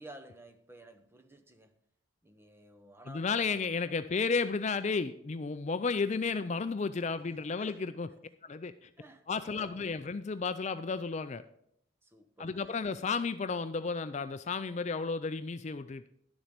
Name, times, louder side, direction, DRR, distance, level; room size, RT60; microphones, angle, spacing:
voice 1, 0.0-1.8 2.2-3.9 7.2-7.9 8.2-8.3 9.0-9.9 12.0-12.7, right 1 dB, 10° right, 0.8 m, -53 dB
voice 2, 3.1-8.1 8.4-8.9 9.3-11.4 12.4-16.1, left 4 dB, 35° left, 0.4 m, -33 dB
11.5 x 7.2 x 5.1 m
head